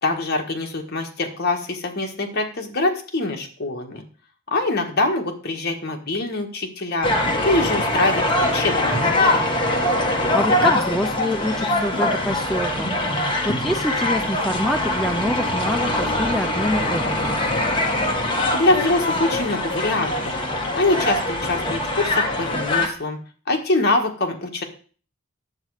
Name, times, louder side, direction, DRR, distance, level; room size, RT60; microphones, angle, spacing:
voice 1, 0.0-4.0 4.5-7.1 7.4-9.5 18.5-20.3 20.8-23.2 23.5-24.6, left 2 dB, 50° left, 2 dB, 1.5 m, -24 dB
sound 1, 7.0-22.9, left 1 dB, 25° left, 1.4 m, -22 dB
voice 2, 10.0-17.4, left 1 dB, ahead, 4 dB, 0.5 m, -26 dB
9.6 x 7.7 x 4.8 m, 0.41 s
head